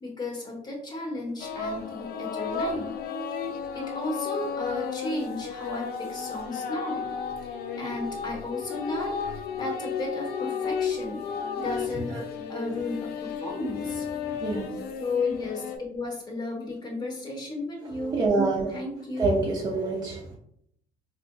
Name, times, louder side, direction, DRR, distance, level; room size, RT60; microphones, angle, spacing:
voice 1, 0.0-2.9 3.7-7.0 7.4-11.2 11.6-12.2 12.5-14.1 15.0-18.2 18.7-19.4, left 2 dB, 25° left, -1 dB, 1.1 m, -34 dB
sound 1, 1.4-15.8, left 6 dB, 65° left, 0.4 m, -33 dB
voice 2, 18.1-18.7 19.2-20.2, right 3 dB, 25° right, -5 dB, 0.7 m, -25 dB
4.1 x 2.5 x 2.2 m, 0.72 s
cardioid pair, 110°, 17 cm